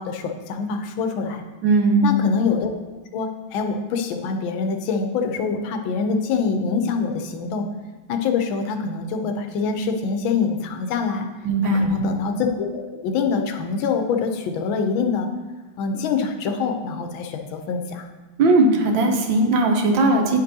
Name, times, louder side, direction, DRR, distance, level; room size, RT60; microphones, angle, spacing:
voice 1, 0.0-1.4 2.0-2.7 3.1-7.7 8.1-11.3 11.6-15.3 15.8-18.1, left 5 dB, 80° left, 6 dB, 1.4 m, -25 dB
voice 2, 1.6-2.1 11.4-12.0 18.4-20.4, right 2 dB, 75° right, 2 dB, 1.5 m, -18 dB
9.2 x 5.2 x 2.7 m, 1.2 s
omnidirectional pair, 2.2 m